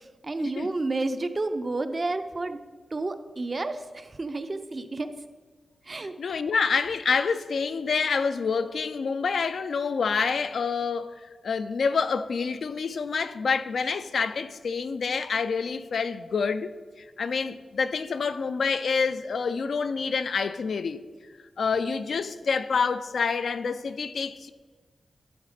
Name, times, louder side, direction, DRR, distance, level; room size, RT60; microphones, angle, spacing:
voice 1, 0.2-2.6 2.9-5.1 5.9-6.1, right 2 dB, 30° right, 0.5 m, -30 dB
voice 2, 6.0-16.7 17.2-21.0 21.6-24.5, left 5 dB, 65° left, 0.4 m, -27 dB
12.0 x 4.1 x 5.0 m
wide cardioid pair, 140°, 0 cm